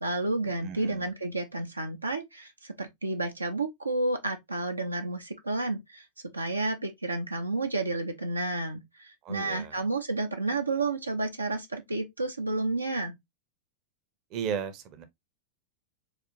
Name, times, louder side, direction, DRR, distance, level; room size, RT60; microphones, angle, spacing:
voice 1, 0.0-6.1 6.3-13.2, right 2 dB, 80° right, 0.5 m, -31 dB
voice 2, 0.6-1.1 9.2-9.9 14.3-15.0, right 7 dB, 40° right, 0.6 m, -35 dB
4.1 x 2.4 x 2.6 m
figure-of-eight pair, 90°, 0 cm